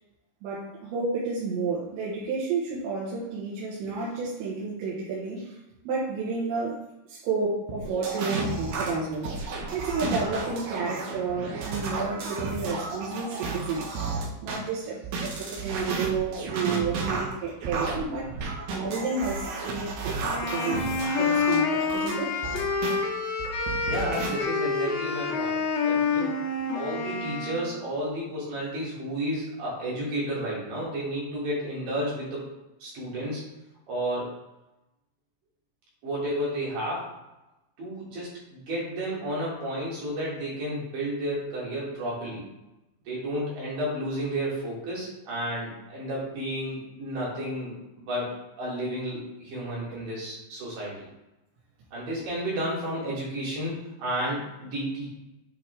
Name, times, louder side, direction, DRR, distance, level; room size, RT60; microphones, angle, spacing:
voice 1, 0.4-5.6 5.8-6.8 7.1-9.3 9.7-13.9 14.4-18.3 18.7-20.1 20.4-20.8 21.2-22.4, right 4 dB, 80° right, -6 dB, 4.0 m, -31 dB
sound 1, 7.7-14.6 15.0-23.0 23.4-24.3, right 4 dB, 65° right, 3.0 m, -32 dB
sound 2, 20.2-27.7, left 4 dB, 70° left, 3.0 m, -28 dB
voice 2, 23.8-26.4 26.7-32.5 32.8-33.4 33.9-34.3 36.0-37.1 37.8-42.5 43.1-51.1 51.9-55.1, right 1 dB, 50° right, -6 dB, 4.0 m, -32 dB
9.1 x 5.5 x 3.5 m, 0.98 s
omnidirectional pair, 5.9 m